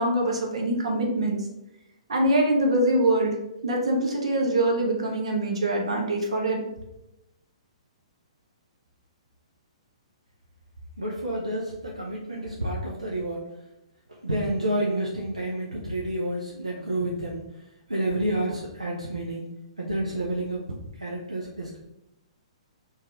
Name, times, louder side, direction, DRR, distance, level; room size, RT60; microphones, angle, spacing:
voice 1, 0.0-1.4 2.1-3.3 3.6-6.6, right 1 dB, 65° right, 0 dB, 1.0 m, -24 dB
voice 2, 11.0-13.4 14.1-19.5 19.8-20.6 20.9-21.8, right 1 dB, 85° right, -4 dB, 0.8 m, -29 dB
4.0 x 2.6 x 3.6 m, 0.91 s
figure-of-eight pair, 120°, 3 cm